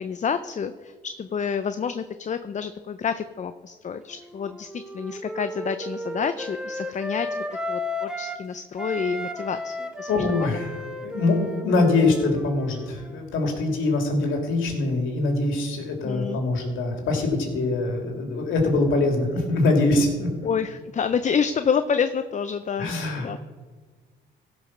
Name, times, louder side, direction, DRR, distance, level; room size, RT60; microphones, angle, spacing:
voice 1, 0.0-10.6 16.0-16.4 20.4-23.4, left 6 dB, 35° left, 10 dB, 0.6 m, -28 dB
Wind instrument woodwind instrument, 4.1-8.5 8.8-13.3, left 1 dB, 5° right, 1.0 m, -34 dB
voice 2, 10.1-20.3 22.8-23.3, left 2 dB, 80° left, 2 dB, 2.6 m, -23 dB
16.0 x 5.3 x 6.0 m, 1.5 s
cardioid pair, 90°, 20 cm